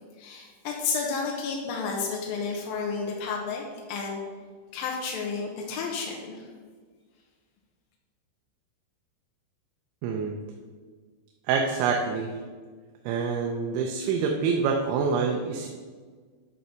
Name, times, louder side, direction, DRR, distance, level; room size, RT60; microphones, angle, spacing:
voice 1, 0.2-4.2 4.7-6.4, left 5 dB, 75° left, -1 dB, 2.2 m, -31 dB
voice 2, 10.0-10.3 11.5-12.3 13.1-15.7, right 5 dB, 85° right, 2 dB, 3.1 m, -26 dB
11.0 x 4.3 x 5.8 m, 1.5 s
omnidirectional pair, 5.2 m